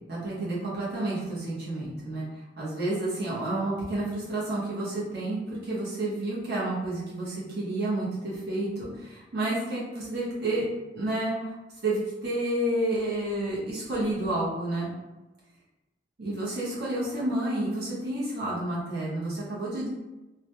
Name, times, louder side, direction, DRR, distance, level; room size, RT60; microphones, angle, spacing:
voice 1, 0.1-2.3 2.6-10.6 10.9-11.5 11.8-14.9 16.2-19.9, right 1 dB, 65° right, -7 dB, 0.8 m, -30 dB
2.3 x 2.0 x 2.8 m, 1.0 s
head